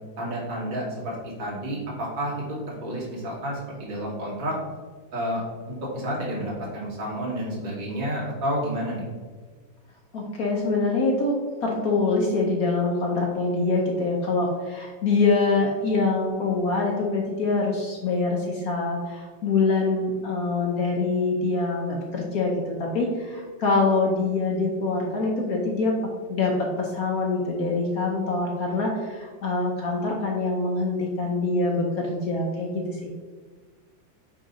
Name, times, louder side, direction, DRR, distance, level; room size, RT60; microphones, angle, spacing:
voice 1, 0.2-4.6 5.1-9.0, equal, 75° right, -6 dB, 2.6 m, -30 dB
voice 2, 10.1-26.0 26.3-33.1, left 3 dB, 60° left, -1 dB, 1.1 m, -25 dB
8.4 x 2.8 x 4.0 m, 1.4 s
omnidirectional pair, 2.1 m